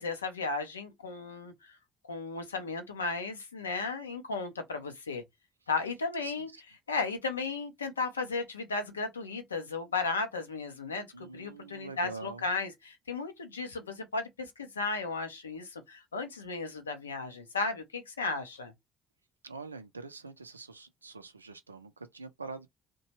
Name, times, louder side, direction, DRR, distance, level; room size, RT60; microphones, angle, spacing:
voice 1, 0.0-1.7 2.1-5.2 5.7-6.5 6.9-18.7, left 4 dB, 85° left, 0.5 m, -35 dB
voice 2, 6.2-6.6 11.1-12.5 19.4-22.7, right 3 dB, 90° right, 0.3 m, -45 dB
2.8 x 2.2 x 2.8 m
figure-of-eight pair, 50°, 0 cm